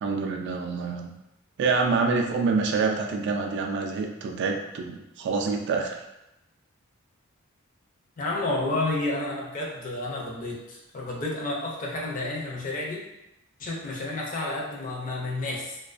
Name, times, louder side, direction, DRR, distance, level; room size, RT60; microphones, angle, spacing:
voice 1, 0.0-1.1 1.6-6.0, right 4 dB, 55° right, 3 dB, 0.3 m, -26 dB
voice 2, 8.2-13.0 13.6-15.8, left 2 dB, 40° left, -2 dB, 0.5 m, -30 dB
2.4 x 2.2 x 2.4 m, 0.90 s
head